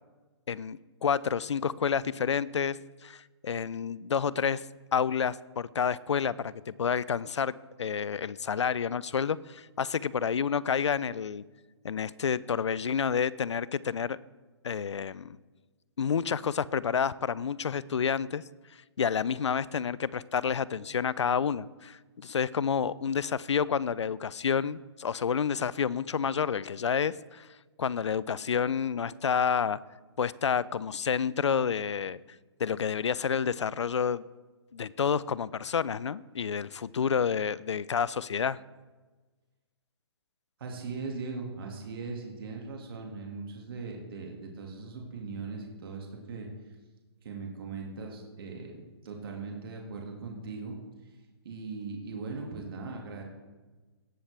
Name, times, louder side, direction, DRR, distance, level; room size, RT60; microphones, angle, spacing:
voice 1, 0.5-2.8 3.0-4.6 4.9-11.4 11.8-14.2 14.6-15.4 16.0-18.4 19.0-27.5 27.8-29.8 30.2-32.2 32.6-34.2 34.7-38.6, left 7 dB, 90° left, 20 dB, 0.4 m, -29 dB
voice 2, 40.6-46.5 47.2-50.8 51.0-51.1 51.4-53.2, right 4 dB, 55° right, 0 dB, 2.1 m, -39 dB
17.5 x 7.2 x 3.4 m, 1.3 s
hypercardioid pair, 145°, 14 cm